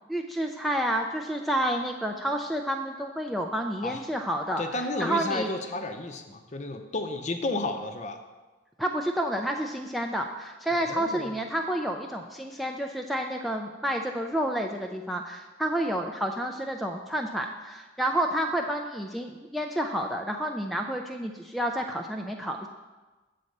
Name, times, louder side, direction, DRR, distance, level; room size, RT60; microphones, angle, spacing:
voice 1, 0.1-4.6 5.0-5.5 8.8-22.7, right 1 dB, ahead, 2 dB, 0.3 m, -30 dB
voice 2, 4.6-8.2 10.7-11.3, left 2 dB, 40° left, 6 dB, 0.6 m, -32 dB
8.1 x 4.2 x 6.5 m, 1.2 s
head